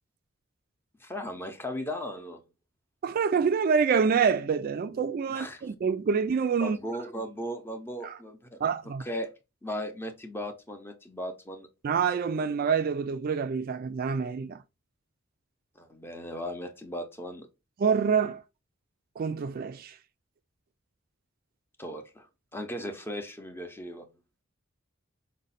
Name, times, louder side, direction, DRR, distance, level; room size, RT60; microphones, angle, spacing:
voice 1, 1.0-2.4 5.3-5.6 6.6-8.6 9.0-9.3 9.6-11.7 15.8-17.5 21.8-22.3 22.5-24.1, equal, 10° left, 0.6 m, -37 dB
voice 2, 3.0-6.8 8.0-8.2 8.6-9.0 11.8-14.6 17.8-18.4 19.2-20.0, right 6 dB, 45° right, 0.3 m, -26 dB
4.9 x 2.1 x 4.0 m
head